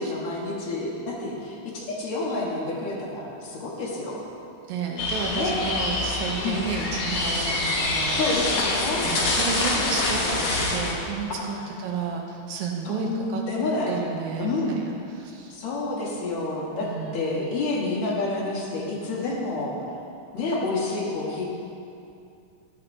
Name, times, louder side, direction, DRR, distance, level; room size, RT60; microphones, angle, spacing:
voice 1, 0.0-4.3 5.3-5.6 6.4-6.6 8.1-9.0 9.6-10.6 11.3-11.6 12.9-14.0 14.4-14.7 15.5-19.7 20.3-21.5, left 2 dB, 65° left, -4 dB, 2.4 m, -29 dB
voice 2, 4.7-8.3 9.0-11.6 11.8-13.4 13.9-15.5 16.8-17.3, right 5 dB, 80° right, 1 dB, 1.9 m, -32 dB
sound 1, 5.0-10.9, left 2 dB, 85° left, 1.0 m, -26 dB
12.0 x 8.7 x 2.6 m, 2.5 s
omnidirectional pair, 3.6 m